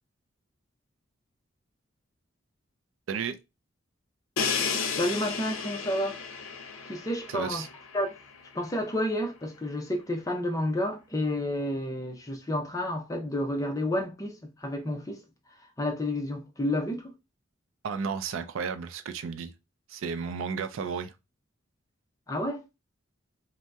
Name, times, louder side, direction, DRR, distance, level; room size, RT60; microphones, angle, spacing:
voice 1, 3.1-3.4 7.3-7.7 17.8-19.5 19.9-21.1, right 6 dB, 75° right, 0.4 m, -33 dB
Crash cymbal, 4.4-8.2, left 5 dB, 90° left, 0.6 m, -33 dB
voice 2, 5.0-6.2 6.9-7.7 7.9-8.2 8.5-15.2 15.8-17.1 22.3-22.6, left 1 dB, 15° left, 0.5 m, -30 dB
2.7 x 2.0 x 3.3 m
head